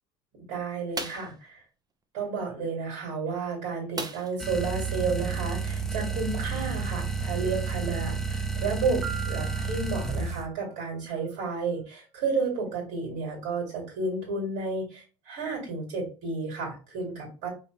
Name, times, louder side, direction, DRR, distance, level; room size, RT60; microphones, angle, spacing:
voice 1, 0.5-1.6 2.1-17.5, right 4 dB, 65° right, -1 dB, 2.3 m, -32 dB
sound 1, 0.9-1.4 4.0-4.5 4.9-5.0 5.4-5.6, right 3 dB, 25° right, 0.9 m, -36 dB
sound 2, 4.4-10.5, right 4 dB, 5° left, 0.8 m, -31 dB
Piano, 9.0-10.9, right 8 dB, 85° right, 0.5 m, -41 dB
5.2 x 3.1 x 3.2 m, 0.35 s
figure-of-eight pair, 60°, 15 cm